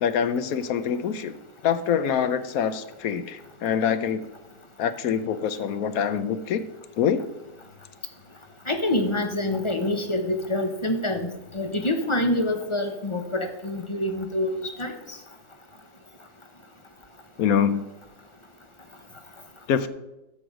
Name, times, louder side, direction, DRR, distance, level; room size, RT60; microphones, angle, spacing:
voice 1, 0.0-1.3 1.6-4.2 4.8-6.6 7.0-7.3 17.4-17.8 19.7-19.9, left 8 dB, 65° left, 12 dB, 1.1 m, -25 dB
voice 2, 8.7-11.3 11.5-14.9, left 1 dB, 25° left, 6 dB, 0.7 m, -26 dB
12.0 x 7.8 x 5.0 m, 0.96 s
omnidirectional pair, 1.7 m